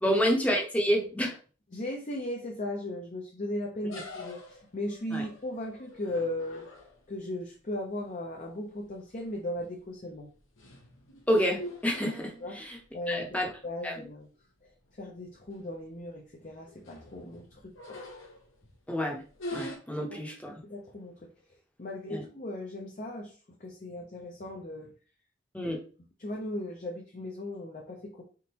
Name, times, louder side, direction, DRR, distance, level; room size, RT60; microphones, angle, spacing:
voice 1, 0.0-1.4 5.1-5.2 11.3-12.8 13.1-13.5 13.8-14.1 18.9-19.2 19.5-20.5 22.1-22.2 25.5-25.8, equal, 5° left, 1 dB, 0.8 m, -28 dB
voice 2, 1.7-6.7 7.1-10.3 12.4-12.6 12.9-14.3 14.9-18.0 20.1-20.2 20.5-21.3 21.8-24.9 25.6-25.7 26.2-28.2, left 1 dB, 40° left, -1 dB, 0.7 m, -37 dB
sound 1, 3.9-7.2 8.8-9.1 9.5-9.9 10.3-12.8 13.3-13.4 13.7-13.8 14.6-14.7 15.0-15.2 15.5-15.9 16.5-18.7 19.3-19.8, left 1 dB, 75° left, 1.0 m, -44 dB
3.9 x 3.6 x 2.9 m, 0.38 s
head